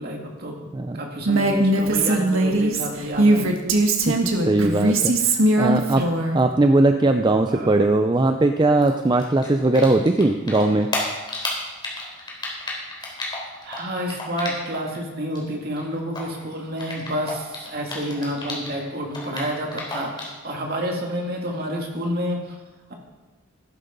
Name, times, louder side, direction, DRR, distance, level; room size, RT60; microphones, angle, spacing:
voice 1, 0.0-0.6 0.9-3.5 6.0-6.1 7.5-7.7 13.6-22.6, equal, 50° right, 0 dB, 2.4 m, -29 dB
Female speech woman speaking, 1.3-6.4, right 2 dB, 75° right, 1.5 m, -20 dB
voice 2, 4.1-6.1 6.3-10.9, right 2 dB, 20° right, 6 dB, 0.4 m, -20 dB
Typing, 8.8-10.2 10.5-15.0 15.2-18.8 19.1-20.4, left 2 dB, 20° left, 3.4 m, -32 dB
14.5 x 12.0 x 3.9 m, 1.2 s
head